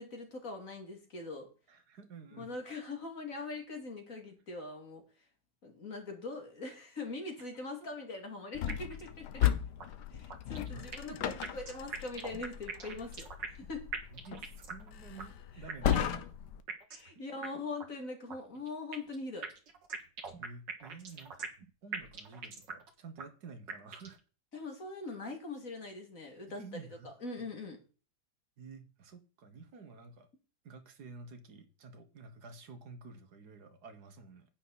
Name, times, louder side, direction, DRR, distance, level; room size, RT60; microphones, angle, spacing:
voice 1, 0.0-1.5 2.3-5.0 5.6-9.5 10.1-13.3 13.6-13.9 15.8-16.0 16.9-19.5 24.5-27.8, left 3 dB, 50° left, 2.9 m, -42 dB
voice 2, 1.7-2.5 7.8-7.9 10.6-11.3 14.1-16.3 17.2-17.3 20.4-21.5 21.8-24.2 26.5-27.1 28.6-30.3 30.6-34.5, right 4 dB, 65° right, 1.8 m, -51 dB
sound 1, 8.5-16.6, left 10 dB, 70° left, 1.4 m, -36 dB
sound 2, 8.7-9.1 9.4-9.5 9.8-9.9 10.3-11.2 11.4-13.7 13.9-14.9 15.2-15.3 15.7-16.2 16.7-17.1 17.4-17.5 17.8-17.9 18.3-19.2 19.4-21.7 21.9-22.9 23.2-23.3 23.7-24.2, right 5 dB, 85° right, 2.3 m, -42 dB
10.5 x 9.1 x 4.2 m
omnidirectional pair, 1.9 m